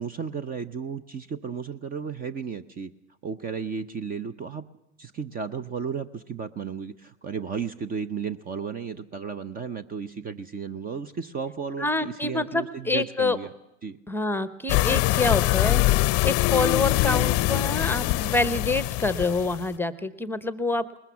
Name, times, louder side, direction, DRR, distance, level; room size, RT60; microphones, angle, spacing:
voice 1, 0.0-2.9 3.2-4.6 5.0-13.5 13.8-14.0, right 6 dB, 25° right, 14 dB, 0.7 m, -34 dB
voice 2, 11.8-13.4 14.1-21.0, left 3 dB, 5° left, 13 dB, 0.8 m, -27 dB
sound 1, 14.7-19.7, left 18 dB, 40° left, 0.7 m, -23 dB
20.5 x 20.5 x 7.1 m, 0.88 s
hypercardioid pair, 105°, 37 cm